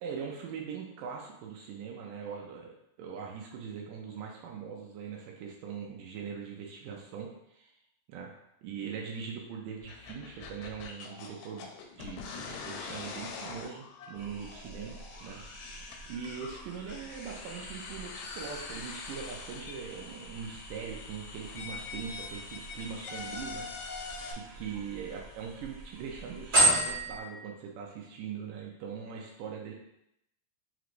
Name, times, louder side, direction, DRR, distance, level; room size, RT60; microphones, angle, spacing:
voice 1, 0.0-7.7 8.1-8.3 8.6-11.7 12.0-15.4 16.1-23.9 24.3-29.7, right 6 dB, 80° right, 0 dB, 2.1 m, -41 dB
sound 1, 9.8-24.3, left 5 dB, 90° left, 2.4 m, -44 dB
sound 2, 14.1-27.2, right 1 dB, 50° right, 1.0 m, -36 dB
5.8 x 3.1 x 2.5 m, 0.78 s
omnidirectional pair, 4.1 m